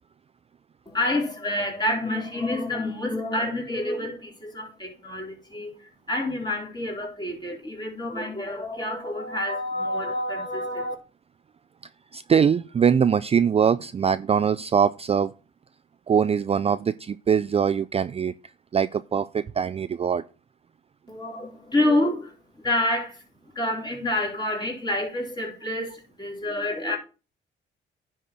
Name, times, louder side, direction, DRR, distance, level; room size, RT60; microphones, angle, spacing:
voice 1, 0.9-10.9 21.1-23.3 23.5-27.0, left 1 dB, 20° left, 4.1 m, -28 dB
voice 2, 12.1-15.3 16.1-18.3 18.7-20.2, right 7 dB, 30° right, 0.4 m, -22 dB
10.0 x 4.3 x 6.2 m
cardioid pair, 90°, 20 cm